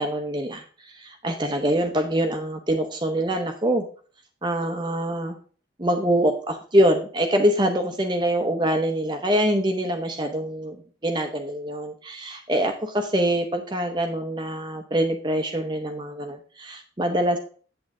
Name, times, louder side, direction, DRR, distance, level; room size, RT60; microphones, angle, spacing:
voice 1, 0.0-3.8 4.4-5.4 5.8-17.4, right 1 dB, 25° right, 5 dB, 0.8 m, -24 dB
8.5 x 7.8 x 3.7 m, 0.42 s
head